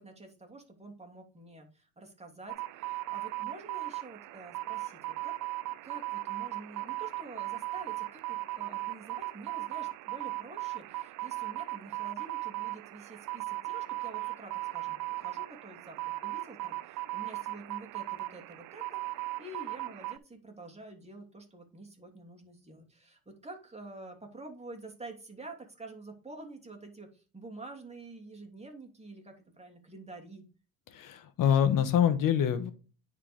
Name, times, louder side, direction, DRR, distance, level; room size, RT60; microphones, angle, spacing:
voice 1, 0.0-5.3 5.8-19.0 19.4-30.5, right 2 dB, 20° right, 3 dB, 2.7 m, -48 dB
sound 1, 2.5-20.2, right 19 dB, 60° right, 0.5 m, -37 dB
voice 2, 30.9-32.7, left 9 dB, 65° left, 10 dB, 1.5 m, -25 dB
9.8 x 4.7 x 3.5 m, 0.36 s
supercardioid pair, 80°, 35 cm